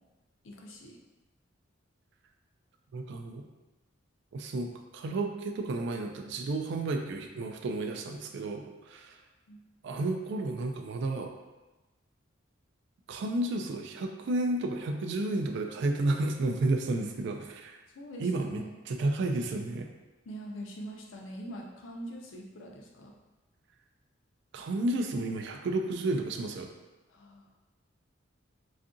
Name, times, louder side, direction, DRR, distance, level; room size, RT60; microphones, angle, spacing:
voice 1, 0.4-1.0 9.5-9.6 17.9-18.7 20.3-23.2 27.1-27.4, equal, 75° left, 0 dB, 0.5 m, -43 dB
voice 2, 2.9-3.4 4.3-9.2 9.8-11.3 13.1-17.8 18.2-19.9 24.5-26.7, right 2 dB, 60° right, 4 dB, 0.3 m, -32 dB
2.7 x 2.4 x 2.5 m, 1.1 s
head